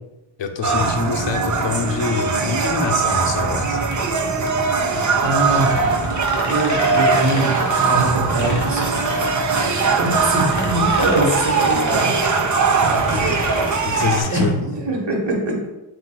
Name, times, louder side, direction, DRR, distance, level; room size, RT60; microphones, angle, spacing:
voice 1, 0.4-3.8 13.0-13.5 13.8-14.6, left 5 dB, 60° left, 4 dB, 0.6 m, -25 dB
sound 1, 0.6-14.2, right 4 dB, 40° right, 0.4 m, -20 dB
sound 2, 0.7-14.7, left 1 dB, 15° left, 0.6 m, -33 dB
voice 2, 5.2-6.0 6.4-8.9 9.6-12.1 13.2-13.5 14.3-15.7, right 1 dB, 60° right, 0 dB, 1.1 m, -23 dB
sound 3, 5.7-10.2 10.5-14.6, left 1 dB, 35° left, 1.1 m, -31 dB
7.4 x 2.5 x 2.2 m, 0.94 s
wide cardioid pair, 65°, 50 cm